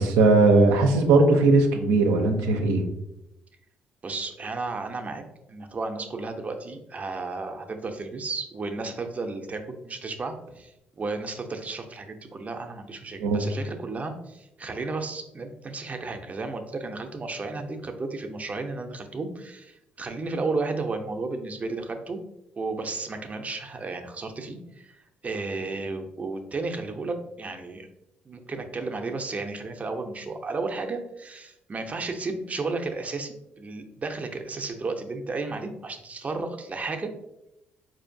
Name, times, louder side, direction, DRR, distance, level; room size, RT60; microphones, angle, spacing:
voice 1, 0.0-2.8 13.2-13.4, right 3 dB, 85° right, 4 dB, 0.5 m, -19 dB
voice 2, 4.0-5.2 5.5-22.2 22.6-27.9 28.2-37.1, right 3 dB, 35° right, 5 dB, 0.6 m, -33 dB
4.3 x 2.7 x 2.6 m, 0.88 s
hypercardioid pair, 55°, 4 cm